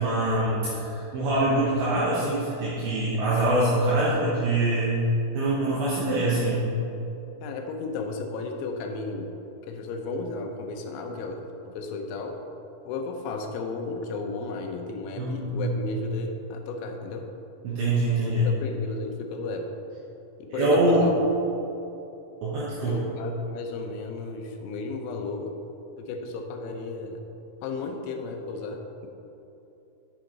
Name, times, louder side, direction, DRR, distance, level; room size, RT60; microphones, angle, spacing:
voice 1, 0.0-5.0 5.3-6.7 15.2-15.8 17.6-18.5 20.5-21.1 22.4-23.0, right 2 dB, 70° right, -8 dB, 3.0 m, -24 dB
voice 2, 7.4-9.3 9.6-12.4 12.9-17.3 18.3-19.8 20.4-21.2 22.8-25.5 26.0-27.2 27.6-29.1, left 3 dB, 80° left, 3 dB, 2.8 m, -34 dB
7.8 x 7.6 x 3.9 m, 2.9 s
omnidirectional pair, 5.9 m